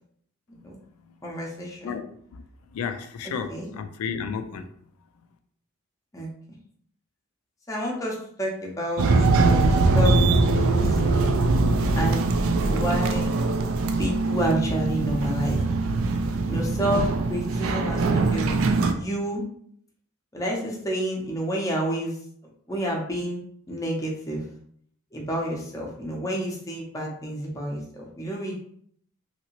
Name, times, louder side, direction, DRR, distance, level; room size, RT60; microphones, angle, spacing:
voice 1, 1.2-2.0 3.5-3.7 6.1-6.3 7.7-10.2 10.5-11.1 11.9-12.2 12.7-13.4 14.0-15.8 16.4-19.4 20.3-22.2 22.7-23.4 23.7-24.4 25.1-28.5, right 1 dB, 15° left, -2 dB, 0.6 m, -29 dB
voice 2, 1.8-2.4 2.7-4.7, left 6 dB, 85° left, 8 dB, 0.3 m, -32 dB
sound 1, 9.0-18.9, right 3 dB, 70° right, 0.3 m, -22 dB
2.9 x 2.7 x 2.9 m, 0.64 s
head